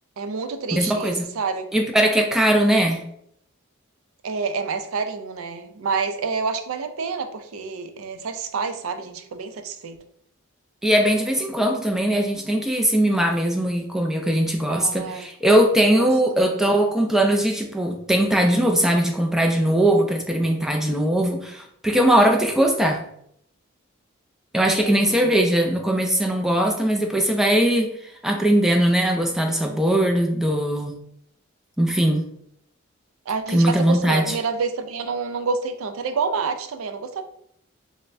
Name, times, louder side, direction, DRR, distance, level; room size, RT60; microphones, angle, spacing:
voice 1, 0.2-1.7 4.2-10.0 14.7-15.3 16.0-16.7 24.5-25.3 33.3-37.2, right 5 dB, 80° right, 7 dB, 0.4 m, -28 dB
voice 2, 0.7-1.3 1.7-3.1 10.8-23.1 24.5-27.9 28.2-31.0 31.8-32.3 33.5-34.4, right 1 dB, ahead, 2 dB, 0.3 m, -20 dB
5.4 x 2.1 x 2.5 m, 0.71 s
head